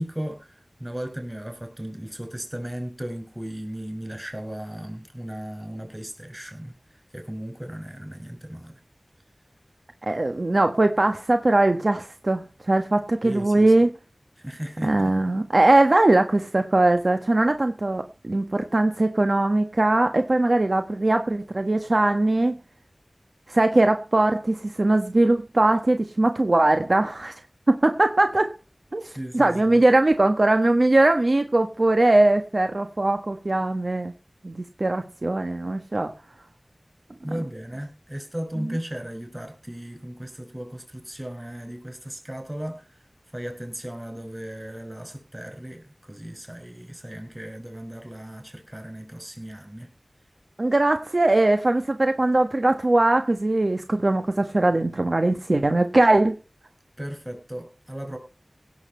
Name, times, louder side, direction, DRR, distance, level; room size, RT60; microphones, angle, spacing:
voice 1, 0.0-6.7 7.1-8.8 13.2-13.7 14.4-15.1 29.2-29.8 37.2-42.8 43.3-49.9 57.0-58.2, right 1 dB, 20° right, 5.8 m, -36 dB
voice 2, 10.1-13.9 14.8-22.6 23.5-27.3 27.7-28.5 28.9-34.1 34.4-36.1 38.6-38.8 50.6-56.4, right 2 dB, 60° right, 1.3 m, -21 dB
17.0 x 7.3 x 5.6 m
wide cardioid pair, 45°, 0 cm